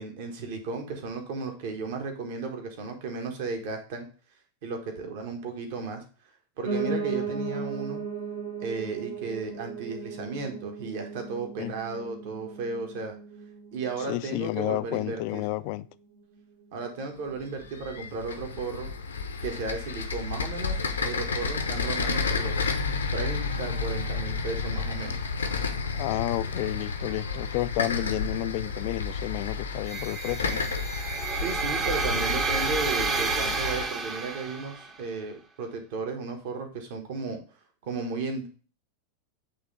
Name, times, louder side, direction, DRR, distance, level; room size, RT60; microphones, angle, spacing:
voice 1, 0.0-4.1 4.6-6.0 6.6-8.0 8.6-13.1 13.7-15.4 16.7-18.9 19.4-22.8 23.1-25.2 31.3-37.4 37.8-38.5, right 4 dB, 50° right, 1.4 m, -34 dB
Piano, 6.6-15.7 16.1-17.3 17.6-17.7 17.9-18.0 18.2-18.3 18.9-19.0, right 4 dB, 85° right, 2.1 m, -36 dB
voice 2, 14.1-15.9 25.9-30.6, left 18 dB, 45° left, 0.3 m, -31 dB
sound 1, 17.3-33.8, left 4 dB, 75° left, 0.8 m, -31 dB
sound 2, 29.9-34.9, right 4 dB, 25° right, 0.8 m, -30 dB
8.6 x 3.3 x 3.9 m
figure-of-eight pair, 90°, 0 cm